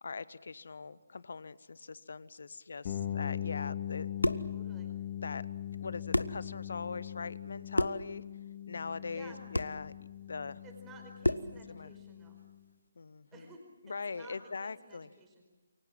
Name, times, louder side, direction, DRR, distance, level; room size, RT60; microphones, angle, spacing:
voice 1, 0.0-4.4 5.2-5.5 5.8-8.2 8.7-9.9 10.3-10.6 11.7-11.9 13.0-13.5 13.8-15.1, left 4 dB, 55° left, 19 dB, 0.9 m, -41 dB
sound 1, 2.8-12.6, left 11 dB, 35° left, 3.3 m, -41 dB
sound 2, 3.9-4.5 5.7-5.8 6.1-6.4 7.7-8.1 9.5-9.8 11.2-11.6, left 1 dB, 80° left, 1.0 m, -30 dB
voice 2, 4.5-4.9 9.1-9.5 10.6-12.4 13.3-15.4, right 3 dB, 15° right, 2 dB, 4.6 m, -54 dB
28.5 x 23.5 x 7.5 m, 1.2 s
figure-of-eight pair, 145°, 0 cm